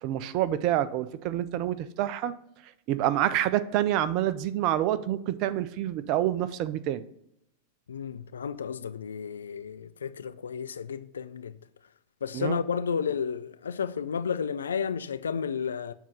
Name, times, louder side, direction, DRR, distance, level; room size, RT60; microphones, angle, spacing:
voice 1, 0.0-2.3 2.9-7.0 12.3-12.6, right 12 dB, 40° right, 0.5 m, -27 dB
voice 2, 7.9-11.5 12.2-15.9, left 6 dB, 70° left, 0.3 m, -32 dB
7.2 x 3.5 x 5.4 m
figure-of-eight pair, 90°, 0 cm